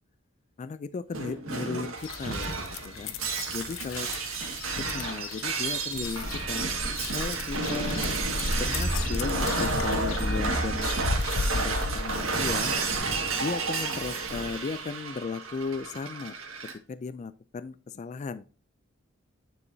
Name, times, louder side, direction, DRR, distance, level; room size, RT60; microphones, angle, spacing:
voice 1, 0.6-3.1 3.5-4.1 4.8-6.7 7.1-8.1 8.4-10.9 11.5-12.7 13.4-16.4 16.9-18.4, left 4 dB, 35° left, 14 dB, 0.3 m, -35 dB
Shatter, 1.1-16.7, right 3 dB, 85° right, 1.8 m, -31 dB
sound 1, 2.0-12.2, left 4 dB, 80° left, 0.6 m, -36 dB
Walk footsteps, 5.9-13.0, equal, ahead, 2.5 m, -35 dB
9.7 x 4.7 x 2.7 m, 0.37 s
head